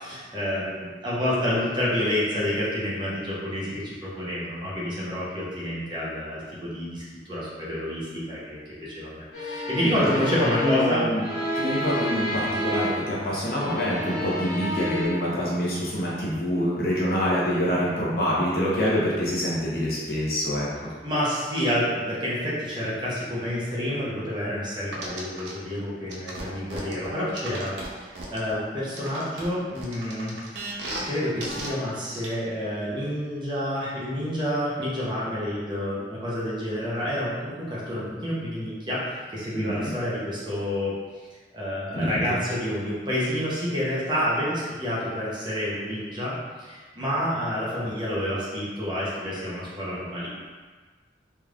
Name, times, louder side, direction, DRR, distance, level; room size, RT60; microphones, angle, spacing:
voice 1, 0.0-11.0 21.0-30.7 31.0-40.9 41.5-50.3, equal, 25° right, -8 dB, 0.7 m, -29 dB
sound 1, 9.3-13.2 13.5-15.1, left 1 dB, 75° left, 1.4 m, -30 dB
voice 2, 9.8-11.2 11.5-20.9 39.5-39.9 41.9-42.3, equal, 55° left, -7 dB, 0.9 m, -26 dB
sound 2, 24.9-25.5 26.1-28.5 29.0-31.1 31.4-31.7 32.1-32.3, right 2 dB, 85° right, 0.6 m, -35 dB
3.4 x 3.1 x 2.4 m, 1.4 s
head